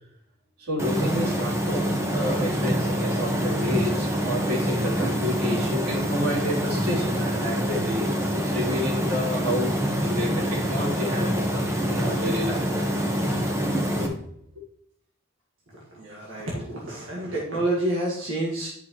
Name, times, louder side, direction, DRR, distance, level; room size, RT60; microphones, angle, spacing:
voice 1, 0.6-12.6 13.9-14.1, left 1 dB, 90° right, -5 dB, 3.6 m, -30 dB
sound 1, 0.8-14.1, equal, 15° right, 1.1 m, -26 dB
voice 2, 15.9-18.7, right 1 dB, 65° right, -5 dB, 1.9 m, -28 dB
10.5 x 5.7 x 3.1 m, 0.68 s
head